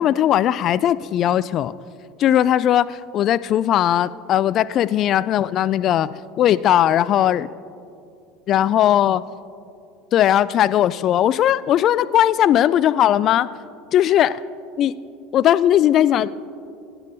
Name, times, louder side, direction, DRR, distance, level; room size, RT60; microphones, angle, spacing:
voice 1, 0.0-1.7 2.2-6.1 6.4-7.5 8.5-9.2 10.1-13.5 13.9-14.4 14.8-14.9 15.3-16.3, left 11 dB, 45° left, 16 dB, 0.3 m, -18 dB
22.0 x 9.9 x 2.7 m, 2.5 s
figure-of-eight pair, 75°, 0 cm